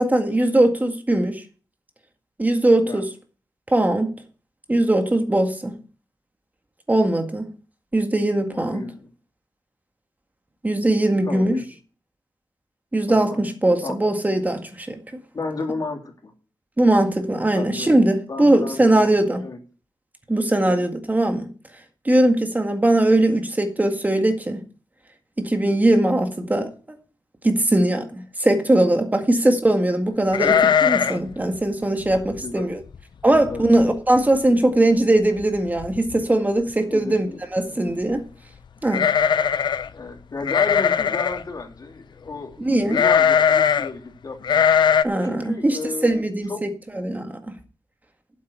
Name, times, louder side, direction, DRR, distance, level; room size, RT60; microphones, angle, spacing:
voice 1, 0.0-1.4 2.4-3.1 3.7-4.1 4.7-5.8 6.9-7.5 7.9-8.9 10.6-11.6 12.9-15.0 16.8-19.4 20.3-21.5 22.1-24.6 25.4-26.7 27.4-32.8 33.2-37.3 37.5-38.2 38.8-39.1 42.6-43.0 45.0-46.7 46.9-47.5, right 1 dB, 20° right, 1.9 m, -20 dB
voice 2, 8.5-9.1 11.2-11.7 13.1-13.5 13.8-14.0 15.3-16.3 17.5-17.9 18.3-19.6 20.6-20.9 32.4-32.7 33.5-33.7 36.9-37.4 39.9-44.7 45.2-46.2 46.5-46.6, left 3 dB, 55° left, 3.0 m, -33 dB
sound 1, 30.3-31.3 31.5-31.6 32.1-32.4 32.9-33.0 33.3-33.8 34.2-34.3 35.4-35.5 35.8-36.2 38.9-39.9 40.5-41.4 42.9-43.9 44.4-45.0, left 7 dB, 90° left, 0.6 m, -19 dB
8.4 x 8.1 x 8.2 m
wide cardioid pair, 85°, 7 cm